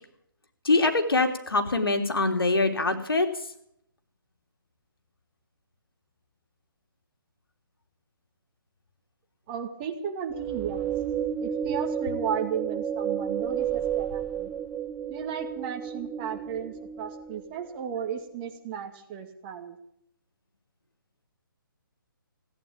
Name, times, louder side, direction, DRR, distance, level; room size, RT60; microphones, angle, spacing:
voice 1, 0.6-3.3, left 3 dB, 85° left, 5 dB, 3.2 m, -23 dB
voice 2, 9.5-10.9 11.4-14.5 15.1-19.8, right 8 dB, 25° right, 4 dB, 2.1 m, -34 dB
sound 1, 10.3-17.7, right 8 dB, 10° right, 0.7 m, -31 dB
17.0 x 9.7 x 8.7 m, 0.70 s
hypercardioid pair, 155°, 12 cm